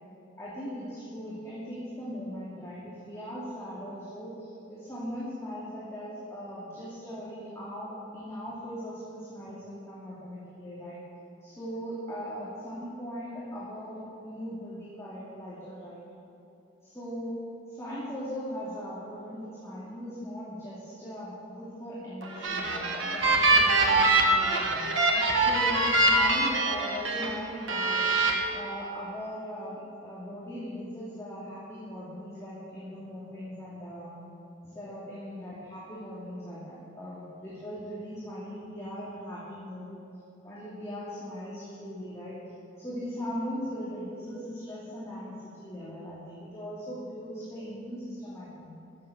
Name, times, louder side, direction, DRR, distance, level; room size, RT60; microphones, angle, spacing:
voice 1, 0.4-11.0 11.4-16.0 16.8-17.3 17.7-24.9 25.3-28.0 28.5-34.2 34.6-39.9 40.4-42.4 42.8-48.7, equal, 15° left, -9 dB, 2.6 m, -39 dB
sound 1, 22.2-27.3 27.7-28.3, right 2 dB, 85° right, 1.7 m, -24 dB
14.0 x 7.7 x 7.8 m, 2.8 s
head